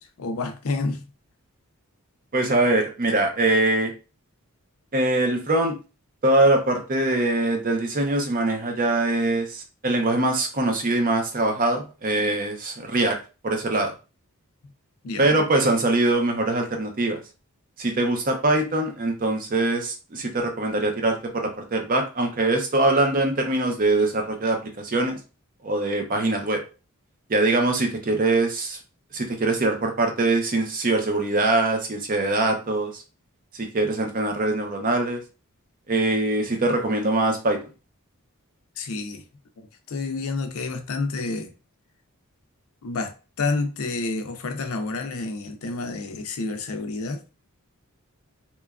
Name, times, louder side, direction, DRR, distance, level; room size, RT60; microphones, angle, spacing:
voice 1, 0.2-1.1 15.0-15.4 38.8-39.2 39.9-41.5 42.8-47.2, left 3 dB, 70° left, 0.5 m, -29 dB
voice 2, 2.3-3.9 4.9-5.7 6.2-13.2 13.4-13.9 15.2-17.2 17.8-25.2 25.6-26.6 27.3-28.8 29.1-33.0 33.6-35.2 35.9-37.6, right 2 dB, 40° right, 0.6 m, -23 dB
3.0 x 2.3 x 2.3 m
head